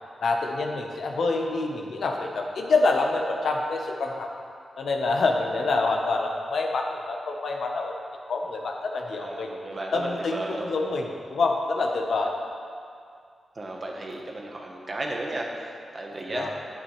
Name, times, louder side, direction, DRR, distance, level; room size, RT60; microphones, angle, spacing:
voice 1, 0.2-4.3 4.8-7.9 8.3-9.5 9.9-12.3 16.3-16.5, left 3 dB, 70° left, 1 dB, 1.0 m, -26 dB
voice 2, 9.2-10.8 13.5-16.5, right 1 dB, 35° right, 0 dB, 1.1 m, -34 dB
10.5 x 9.0 x 3.2 m, 2.3 s
wide cardioid pair, 140°, 0 cm